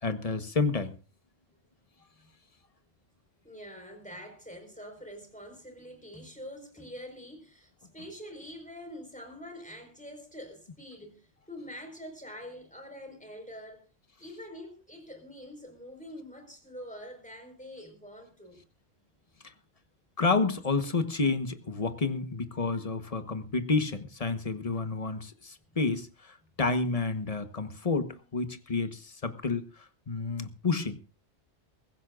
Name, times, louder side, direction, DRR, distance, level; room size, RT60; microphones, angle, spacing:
voice 1, 0.0-1.0 19.4-19.5 20.2-31.0, left 4 dB, 35° left, 1.2 m, -30 dB
voice 2, 3.4-13.8 14.2-18.6, equal, 5° left, 4.7 m, -45 dB
23.0 x 15.5 x 2.5 m
omnidirectional pair, 1.2 m